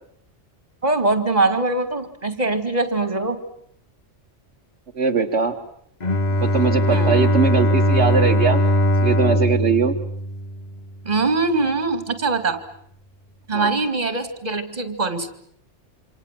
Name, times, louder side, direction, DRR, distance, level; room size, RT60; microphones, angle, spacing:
voice 1, 0.8-3.4 6.9-7.4 11.0-12.6 13.5-15.3, right 3 dB, 35° right, 9 dB, 2.5 m, -22 dB
voice 2, 4.9-5.6 6.4-8.6 9.0-9.9 13.5-13.7, right 5 dB, 60° right, 2 dB, 1.7 m, -20 dB
Bowed string instrument, 6.0-10.9, equal, 35° left, 1.3 m, -20 dB
27.5 x 26.5 x 7.6 m, 0.68 s
omnidirectional pair, 1.3 m